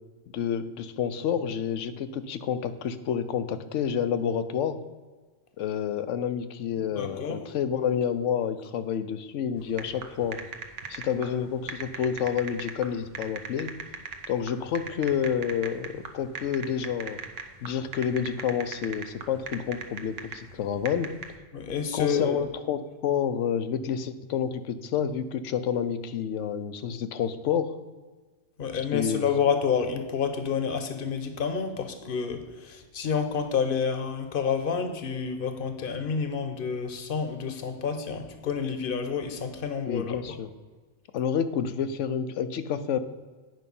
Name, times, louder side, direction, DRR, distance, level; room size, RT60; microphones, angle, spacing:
voice 1, 0.3-4.8 5.6-10.4 10.9-13.7 14.3-17.2 17.6-21.1 21.9-27.7 28.9-29.3 39.9-40.5 41.1-43.0, left 8 dB, 90° left, 12 dB, 1.0 m, -29 dB
voice 2, 7.0-7.4 21.5-22.4 28.6-40.4, left 6 dB, 50° left, 8 dB, 1.0 m, -29 dB
sound 1, 9.6-21.4, right 6 dB, 85° right, 1.2 m, -39 dB
9.3 x 5.5 x 5.4 m, 1.4 s
omnidirectional pair, 1.2 m